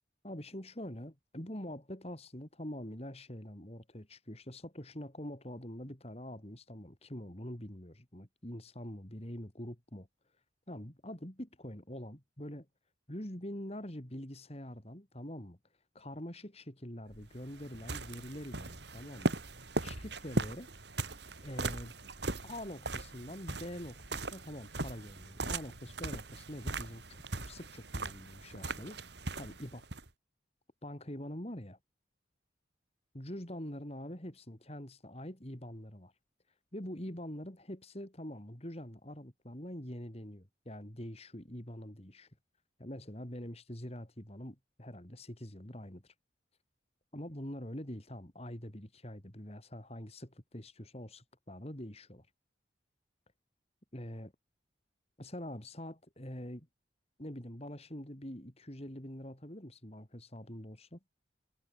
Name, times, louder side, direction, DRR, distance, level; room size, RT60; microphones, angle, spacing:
voice 1, 0.2-10.1 10.7-12.7 13.1-15.6 16.0-19.4 19.8-20.7 21.4-21.9 22.4-29.9 30.8-31.8 33.1-36.1 36.7-42.3 42.8-46.1 47.1-52.3 53.9-54.3 55.2-56.7 57.2-61.0, equal, 30° left, 3.5 m, -45 dB
sound 1, 17.1-30.1, right 2 dB, 60° right, 3.1 m, -39 dB
head